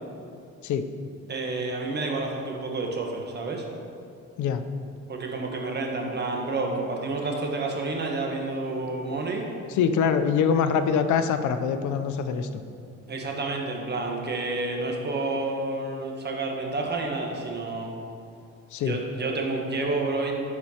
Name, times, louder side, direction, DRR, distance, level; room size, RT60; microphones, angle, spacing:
voice 1, 1.3-3.7 5.1-9.5 13.1-17.9 18.8-20.3, right 3 dB, 35° right, 1 dB, 1.1 m, -29 dB
voice 2, 9.7-12.6 18.7-19.0, left 6 dB, 75° left, 9 dB, 0.5 m, -24 dB
10.5 x 4.3 x 2.8 m, 2.6 s
cardioid pair, 90°, 30 cm